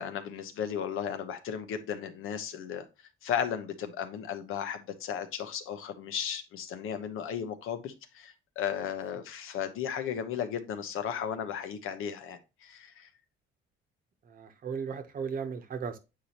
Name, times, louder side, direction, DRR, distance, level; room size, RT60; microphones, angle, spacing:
voice 1, 0.0-2.9 3.2-13.1, left 8 dB, 80° left, 8 dB, 1.1 m, -35 dB
voice 2, 14.3-16.0, right 6 dB, 45° right, 8 dB, 0.9 m, -36 dB
8.5 x 4.8 x 2.9 m, 0.27 s
cardioid pair, 175°, 21 cm